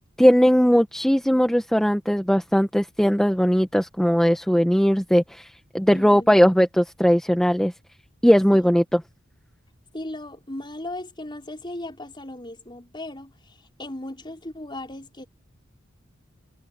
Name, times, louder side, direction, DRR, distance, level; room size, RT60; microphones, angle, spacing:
voice 1, 0.2-7.7 8.2-9.0, equal, 5° left, 1.0 m, -19 dB
voice 2, 5.9-6.4 8.5-8.7 9.9-15.3, left 1 dB, 25° left, 4.9 m, -37 dB
head